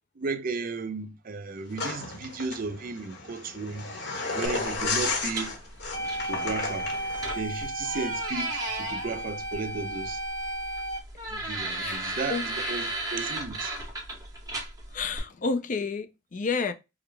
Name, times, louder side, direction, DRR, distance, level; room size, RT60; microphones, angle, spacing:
voice 1, 0.2-3.9 4.3-5.5 6.3-6.9 7.4-10.2 11.3-13.7, right 4 dB, 50° right, 0.5 m, -34 dB
sound 1, 1.8-7.3, left 3 dB, 60° left, 1.1 m, -33 dB
sound 2, 4.4-15.2, right 2 dB, 20° right, 1.0 m, -36 dB
sound 3, 5.9-11.0, right 1 dB, 90° left, 2.2 m, -34 dB
voice 2, 11.8-12.8 14.9-16.7, left 4 dB, 45° left, 0.4 m, -31 dB
4.9 x 2.0 x 3.2 m
head